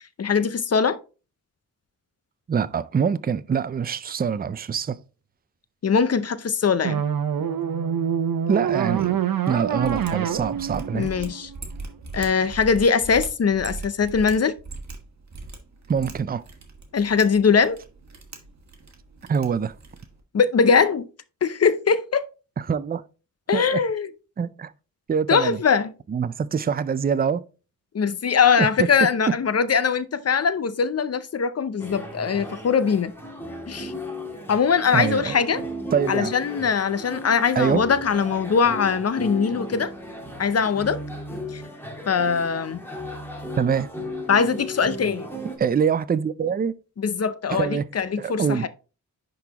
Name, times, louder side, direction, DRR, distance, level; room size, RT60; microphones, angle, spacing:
voice 1, 0.2-1.0 5.8-7.0 10.9-11.5 12.1-14.6 16.9-17.8 20.3-21.1 21.4-22.3 23.5-24.1 25.3-25.9 27.9-33.1 33.7-33.9 34.5-35.6 36.1-39.9 40.4-41.0 41.5-41.6 42.1-42.8 44.3-45.3 47.0-48.7, left 6 dB, 45° left, 0.5 m, -21 dB
voice 2, 2.5-5.0 8.5-9.2 9.5-11.1 15.9-16.4 19.3-19.7 22.6-23.0 23.5-23.8 24.4-24.7 25.1-25.6 26.1-27.4 28.6-28.9 29.3-29.4 34.9-35.4 35.9-36.3 37.6-37.9 43.6-43.9 45.6-46.7 47.5-47.9 48.2-48.7, right 7 dB, 30° right, 0.4 m, -24 dB
sound 1, 6.8-12.0, right 8 dB, 80° right, 0.7 m, -26 dB
Mechanisms, 9.7-20.2, right 3 dB, 55° right, 1.6 m, -40 dB
sound 2, 31.8-45.6, left 1 dB, 5° left, 1.9 m, -35 dB
10.5 x 3.9 x 2.9 m
wide cardioid pair, 90°, 34 cm